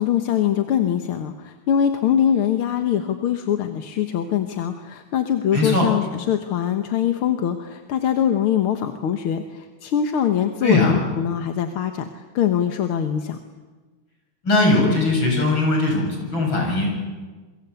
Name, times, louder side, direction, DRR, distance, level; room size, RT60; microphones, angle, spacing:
voice 1, 0.0-13.4, left 9 dB, 85° left, 7 dB, 2.1 m, -23 dB
voice 2, 5.5-5.9 10.6-10.9 14.4-17.1, left 2 dB, 65° left, 0 dB, 7.9 m, -20 dB
28.0 x 23.5 x 8.2 m, 1.3 s
omnidirectional pair, 2.3 m